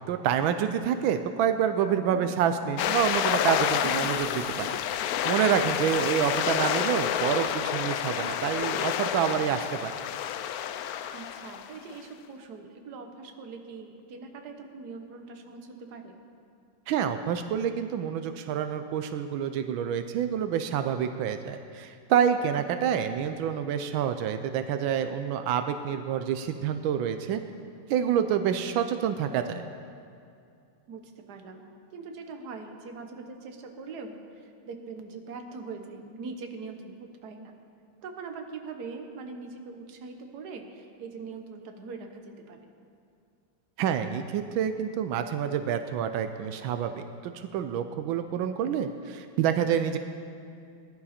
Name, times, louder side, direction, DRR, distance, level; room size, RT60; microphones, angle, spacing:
voice 1, 0.1-4.7 5.2-9.9 16.9-27.4 27.9-29.6 43.8-50.0, right 8 dB, 85° right, 8 dB, 1.4 m, -27 dB
sound 1, 2.8-11.9, left 10 dB, 80° left, 0.8 m, -29 dB
voice 2, 11.1-16.2 22.5-22.6 30.9-31.6 31.9-37.6 38.0-42.7, right 4 dB, 60° right, 5 dB, 1.5 m, -42 dB
19.0 x 11.0 x 4.3 m, 2.4 s
omnidirectional pair, 2.1 m